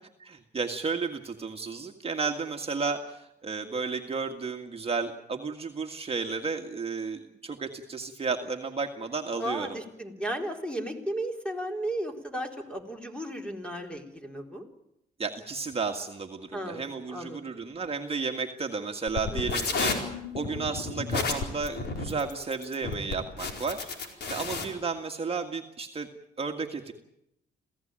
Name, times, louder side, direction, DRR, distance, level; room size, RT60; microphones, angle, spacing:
voice 1, 0.2-9.7 15.2-26.1 26.4-26.9, right 4 dB, 35° right, 3 dB, 1.9 m, -33 dB
voice 2, 9.4-14.6 16.5-17.4 19.3-19.8, right 1 dB, 5° left, 3 dB, 4.2 m, -35 dB
sound 1, 19.1-24.6, left 4 dB, 70° left, 4.5 m, -31 dB
27.0 x 16.0 x 9.0 m, 0.83 s
cardioid pair, 85°, 18 cm